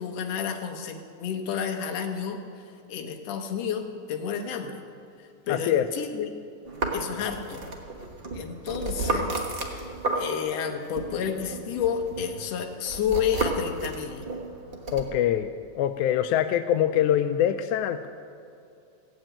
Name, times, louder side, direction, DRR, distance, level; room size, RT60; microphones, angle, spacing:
voice 1, 0.0-2.4 2.9-4.8 5.5-6.3 6.9-7.6 8.3-9.3 10.1-14.3, left 7 dB, 65° left, 4 dB, 2.1 m, -30 dB
voice 2, 5.5-5.9 14.9-15.5 15.8-18.1, left 10 dB, 85° left, 9 dB, 2.0 m, -24 dB
sound 1, 6.7-10.6 11.0-15.1, right 2 dB, 85° right, 0.5 m, -32 dB
16.0 x 7.8 x 8.8 m, 2.6 s
omnidirectional pair, 3.4 m